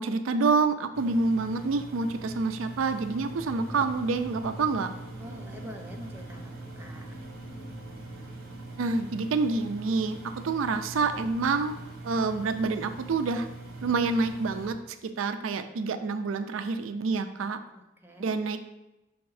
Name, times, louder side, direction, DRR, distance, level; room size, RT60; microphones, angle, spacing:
voice 1, 0.0-4.9 8.8-10.2 10.4-11.8 12.0-13.5 13.8-14.8 15.2-17.6 18.2-18.6, right 4 dB, 85° right, 9 dB, 0.4 m, -27 dB
Engine, 0.9-14.7, right 2 dB, 50° right, 1.1 m, -43 dB
sound 1, 3.1-11.4, equal, 60° left, 0.8 m, -47 dB
voice 2, 5.1-7.2 17.7-18.3, equal, 10° right, 1 dB, 0.7 m, -46 dB
6.0 x 3.5 x 4.7 m, 0.96 s
head